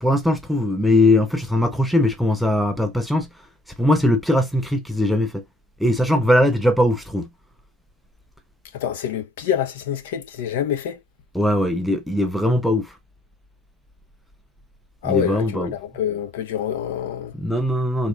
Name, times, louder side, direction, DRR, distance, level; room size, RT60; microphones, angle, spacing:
voice 1, 0.0-3.3 3.8-5.4 5.8-7.3 11.3-13.0 15.0-15.7 17.3-18.1, left 1 dB, ahead, 0.4 m, -20 dB
voice 2, 8.7-11.0 15.0-17.3, left 10 dB, 55° left, 0.9 m, -26 dB
4.0 x 2.4 x 2.3 m
hypercardioid pair, 125°, 0 cm